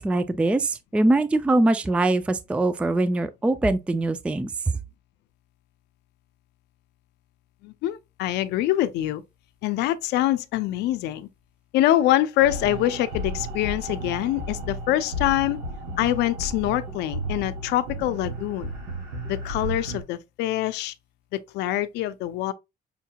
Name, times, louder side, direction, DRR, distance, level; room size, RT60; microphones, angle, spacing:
voice 1, 0.0-4.5, right 2 dB, 5° right, 0.3 m, -22 dB
voice 2, 7.6-9.2 9.6-11.3 11.7-15.6 16.0-18.7 19.3-20.9 21.3-22.5, left 14 dB, 85° left, 0.5 m, -25 dB
sound 1, 12.4-20.0, right 1 dB, 85° right, 1.4 m, -33 dB
5.7 x 2.8 x 2.2 m
cardioid pair, 110°, 17 cm